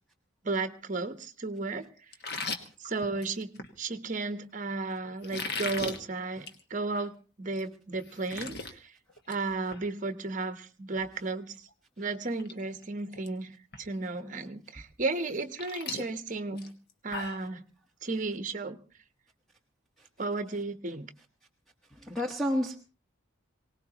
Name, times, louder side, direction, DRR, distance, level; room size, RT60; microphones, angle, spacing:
voice 1, 0.4-1.9 2.8-8.9 9.3-11.7 12.0-16.7 17.0-17.7 18.0-18.8 20.2-21.1, right 3 dB, 35° right, 0.9 m, -34 dB
sound 1, 2.1-3.7 5.2-6.0 6.4-6.6 7.0-7.1 7.6-7.7 7.9-8.7 9.1-9.4 9.7-9.8 11.7-11.8 12.2-12.5 12.8-13.3 13.7-13.8 15.2-17.5, left 4 dB, 50° left, 1.4 m, -38 dB
voice 2, 22.0-22.8, equal, ahead, 1.2 m, -30 dB
23.5 x 18.5 x 3.0 m
head